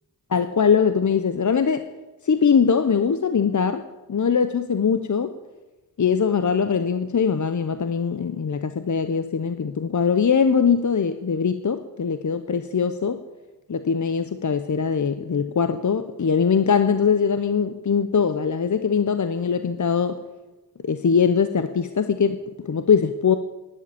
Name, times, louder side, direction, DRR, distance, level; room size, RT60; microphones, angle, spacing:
voice 1, 0.3-1.8 2.2-5.3 6.0-13.2 13.7-20.2 20.8-23.4, left 6 dB, 50° left, 10 dB, 0.7 m, -21 dB
11.5 x 10.0 x 8.4 m, 1.1 s
wide cardioid pair, 95°, 37 cm